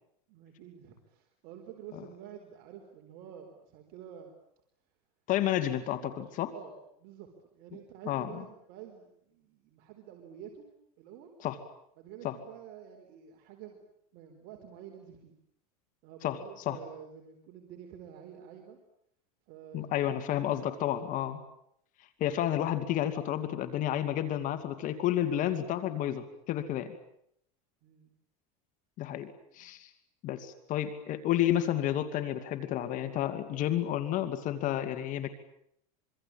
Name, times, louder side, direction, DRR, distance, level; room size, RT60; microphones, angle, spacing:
voice 1, 0.3-4.3 5.9-6.2 6.5-10.7 11.0-11.3 12.0-13.8 14.1-15.4 16.0-18.8 19.5-20.1 20.8-21.3 27.8-28.1 29.6-29.7, right 9 dB, 55° right, 3 dB, 4.3 m, -49 dB
voice 2, 5.3-6.0 6.4-6.5 8.1-8.3 11.4-11.6 12.2-12.4 16.2-16.4 16.7-16.8 19.7-21.4 22.2-27.0 29.0-29.9 30.2-35.3, left 12 dB, 45° left, 9 dB, 2.4 m, -31 dB
26.0 x 24.5 x 9.0 m, 0.73 s
supercardioid pair, 135°, 19 cm